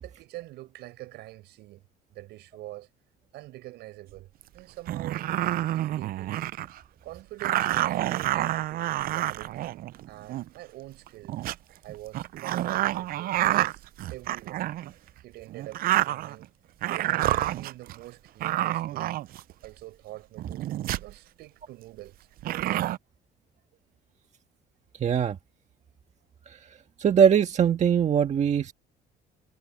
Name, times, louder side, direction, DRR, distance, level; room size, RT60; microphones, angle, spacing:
voice 1, 0.0-1.8 2.1-2.9 3.3-5.3 5.7-6.4 7.0-11.3 11.8-14.6 15.2-16.5 16.9-19.2 19.6-20.7 21.0-22.2, right 17 dB, 85° right, 6.8 m, -45 dB
sound 1, 4.4-4.5 4.9-6.8 7.4-10.5 11.1-11.5 12.1-14.9 15.5-16.5 16.8-18.0 18.4-19.7 20.4-21.1 22.4-23.0, right 14 dB, 60° right, 0.5 m, -28 dB
voice 2, 25.0-25.4 26.5-26.6 27.0-28.7, right 8 dB, 45° right, 1.6 m, -21 dB
cardioid pair, 110°, 17 cm